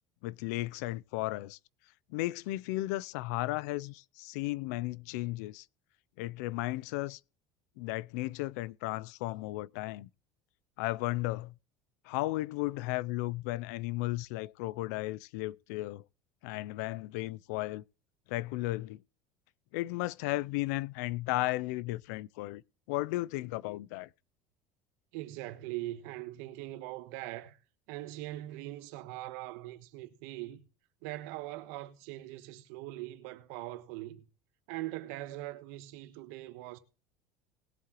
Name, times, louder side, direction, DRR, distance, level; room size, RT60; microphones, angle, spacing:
voice 1, 0.2-1.6 2.1-5.7 6.2-7.2 7.8-10.1 10.8-11.5 12.1-16.0 16.4-17.8 18.3-19.0 19.7-22.6 22.9-24.1, left 19 dB, 85° left, 0.4 m, -34 dB
voice 2, 25.1-27.6 27.9-30.6 31.0-34.3 34.7-36.8, right 16 dB, 75° right, 1.3 m, -41 dB
19.5 x 7.5 x 3.0 m
cardioid pair, 165°, 9 cm